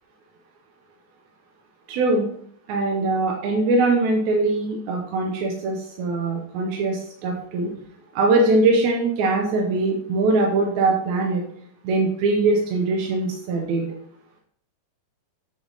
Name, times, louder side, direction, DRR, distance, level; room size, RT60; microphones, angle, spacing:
voice 1, 1.9-2.3 2.7-7.7 8.1-11.4 11.8-13.9, right 3 dB, 75° right, 0 dB, 1.8 m, -22 dB
7.9 x 3.5 x 3.9 m, 0.64 s
omnidirectional pair, 3.9 m